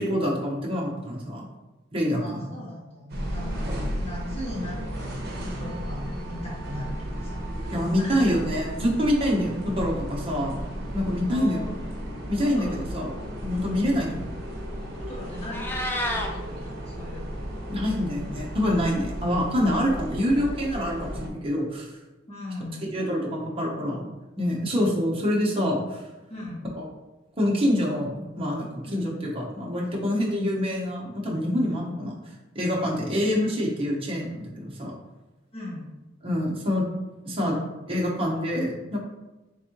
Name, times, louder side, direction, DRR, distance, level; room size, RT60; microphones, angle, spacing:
voice 1, 0.0-1.4 1.9-2.5 7.7-10.6 10.9-11.6 12.3-13.1 13.4-14.3 17.7-22.0 22.9-24.1 24.4-26.0 26.8-26.9 27.4-32.2 32.5-34.9 36.2-36.9 37.3-37.6 37.9-39.0, equal, 30° right, -3 dB, 0.8 m, -26 dB
voice 2, 2.2-3.7 4.0-8.4 11.3-11.8 12.4-12.8 13.6-13.9 15.0-17.6 22.3-22.9 26.3-26.6 28.8-29.0 31.7-31.8 32.8-33.0 35.5-35.9, left 1 dB, 35° left, -6 dB, 1.4 m, -39 dB
sound 1, 3.1-21.3, equal, 55° right, 0.9 m, -34 dB
Meow, 15.3-16.3, left 1 dB, 10° left, 0.4 m, -29 dB
3.9 x 3.6 x 2.9 m, 1.0 s
head